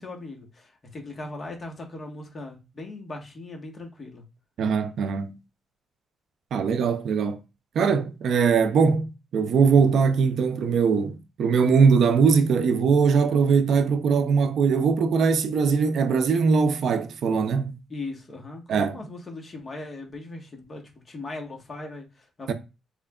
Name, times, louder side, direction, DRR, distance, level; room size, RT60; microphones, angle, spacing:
voice 1, 0.0-4.2 17.9-22.5, left 2 dB, 35° left, 1.3 m, -39 dB
voice 2, 4.6-5.4 6.5-7.4 7.8-17.8 18.7-19.0 22.5-22.6, right 5 dB, 65° right, 0.5 m, -21 dB
4.3 x 3.3 x 2.3 m
cardioid pair, 90°, 0 cm